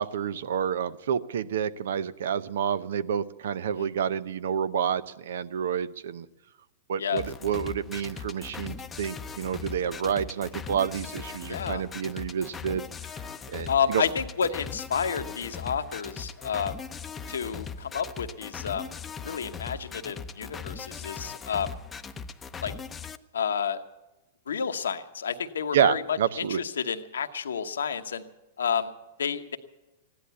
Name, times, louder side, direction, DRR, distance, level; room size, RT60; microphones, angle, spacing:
voice 1, 0.0-6.3 6.9-12.8 13.5-14.0 25.7-26.6, right 8 dB, 75° right, 16 dB, 0.6 m, -29 dB
sound 1, 7.2-23.2, left 6 dB, 15° left, 0.7 m, -39 dB
voice 2, 11.5-11.8 13.7-16.8 17.3-18.9 19.2-21.8 22.6-22.7 23.3-23.8 24.5-28.2 28.6-28.9 29.2-29.6, left 7 dB, 85° left, 8 dB, 1.0 m, -30 dB
15.5 x 11.0 x 8.2 m, 1.0 s
hypercardioid pair, 120°, 0 cm